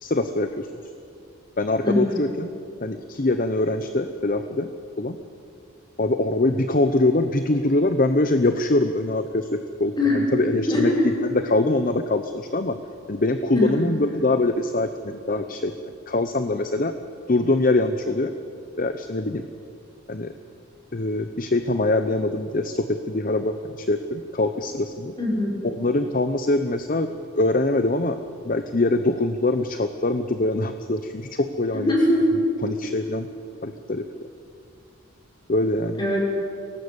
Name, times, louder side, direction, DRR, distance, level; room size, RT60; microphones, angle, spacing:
voice 1, 0.0-0.7 1.6-2.5 2.8-4.7 5.0-5.2 6.0-10.9 11.2-12.8 13.1-15.7 16.1-16.9 17.3-18.3 18.8-19.4 20.1-20.3 20.9-25.1 25.6-27.1 27.4-28.2 28.4-31.9 32.6-33.3 33.6-34.1 35.5-36.0, left 2 dB, 45° left, 8 dB, 0.8 m, -23 dB
voice 2, 1.8-2.1 10.0-10.2 10.7-11.1 13.5-13.9 25.2-25.6 31.7-32.3 36.0-36.3, left 1 dB, 20° left, -4 dB, 6.1 m, -21 dB
23.0 x 18.0 x 8.2 m, 2.5 s
head